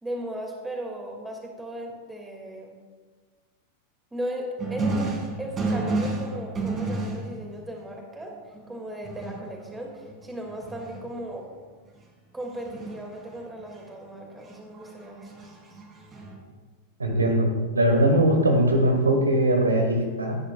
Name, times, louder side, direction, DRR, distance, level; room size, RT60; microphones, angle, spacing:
voice 1, 0.0-2.8 4.1-8.3 8.7-11.5 12.3-15.5, right 1 dB, 10° right, 0 dB, 2.6 m, -36 dB
sound 1, 4.6-7.6 8.5-8.7 9.0-11.2 12.5-13.7 14.4-16.4, right 2 dB, 25° right, 2.7 m, -31 dB
voice 2, 17.0-17.5 17.7-20.4, right 1 dB, 75° right, 3 dB, 2.0 m, -20 dB
17.0 x 10.0 x 2.5 m, 1.4 s
figure-of-eight pair, 90°, 0 cm